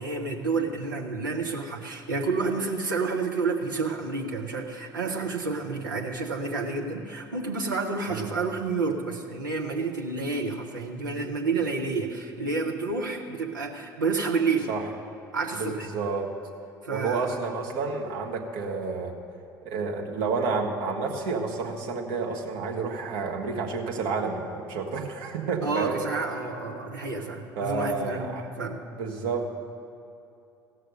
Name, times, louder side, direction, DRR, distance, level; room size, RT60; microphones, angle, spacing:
voice 1, 0.0-14.7 15.3-15.9 16.8-17.3 25.6-28.8, right 4 dB, 80° right, 1 dB, 1.1 m, -29 dB
voice 2, 15.5-16.3 16.9-19.1 19.6-26.0 27.6-28.4 28.9-29.5, right 4 dB, 65° right, 0 dB, 1.4 m, -30 dB
16.0 x 6.3 x 6.5 m, 2.7 s
figure-of-eight pair, 60°, 10 cm